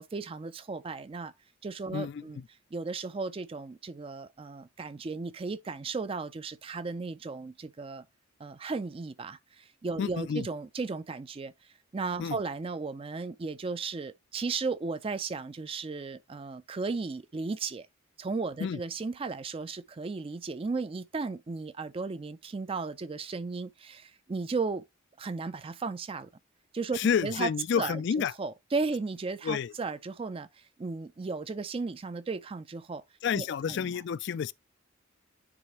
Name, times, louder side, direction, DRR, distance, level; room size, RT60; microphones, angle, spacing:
voice 1, 0.0-1.3 1.6-2.4 2.7-8.1 8.4-11.5 11.9-17.9 18.2-24.8 25.2-26.3 26.7-27.5 27.8-28.0 28.4-30.5 30.8-33.0 33.3-33.9, right 4 dB, 25° right, 0.4 m, -35 dB
voice 2, 1.9-2.5 10.0-10.5 12.2-12.4 18.6-18.8 26.9-28.3 29.4-29.7 33.2-34.5, left 7 dB, 55° left, 0.3 m, -30 dB
9.7 x 3.3 x 3.0 m
head